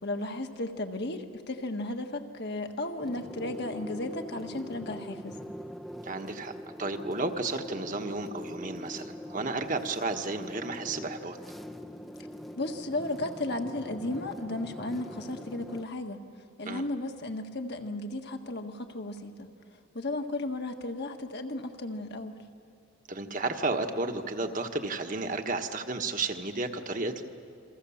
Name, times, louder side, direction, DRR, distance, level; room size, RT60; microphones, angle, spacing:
voice 1, 0.0-5.4 12.6-16.2 16.6-19.5 19.9-22.4, left 2 dB, 55° left, 5 dB, 1.6 m, -34 dB
sound 1, 3.0-15.8, left 1 dB, ahead, 0.7 m, -43 dB
voice 2, 6.0-6.5 6.8-11.4 16.6-16.8 23.1-27.2, right 3 dB, 40° right, 5 dB, 1.4 m, -32 dB
29.0 x 24.0 x 7.2 m, 2.5 s
head